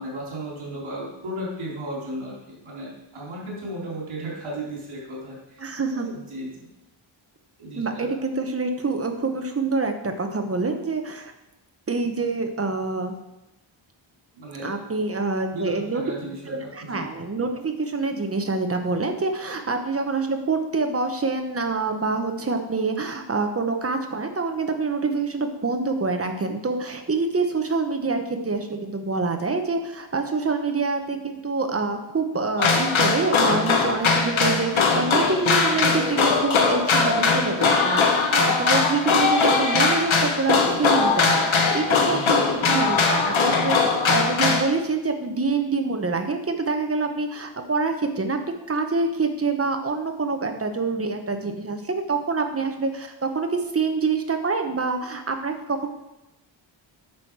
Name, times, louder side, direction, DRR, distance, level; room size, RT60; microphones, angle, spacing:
voice 1, 0.0-5.6 5.9-6.7 7.6-8.1 14.3-14.7 15.5-15.8 16.0-17.0 41.2-41.3 41.9-42.7, right 1 dB, 85° right, -4 dB, 3.7 m, -35 dB
voice 2, 5.6-6.1 7.8-11.3 11.9-13.1 14.6-16.0 16.5-42.4 42.7-48.4 48.7-55.9, right 4 dB, 30° right, 5 dB, 1.0 m, -26 dB
sound 1, 32.6-44.6, left 4 dB, 75° left, 1.4 m, -20 dB
9.7 x 6.4 x 4.7 m, 0.96 s
wide cardioid pair, 145°, 48 cm